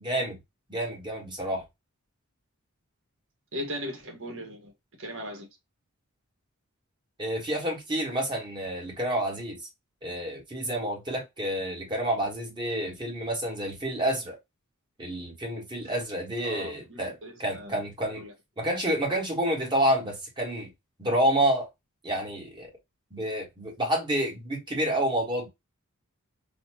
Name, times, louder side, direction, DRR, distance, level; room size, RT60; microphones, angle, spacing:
voice 1, 0.0-0.4 0.7-1.6 7.2-9.6 10.0-14.4 15.0-18.2 18.6-20.7 21.0-21.7 22.0-22.7 23.1-25.5, right 1 dB, 20° right, 1.4 m, -29 dB
voice 2, 3.5-4.7 5.0-5.5 16.4-18.3, equal, 60° right, 1.5 m, -38 dB
4.0 x 2.3 x 2.9 m
head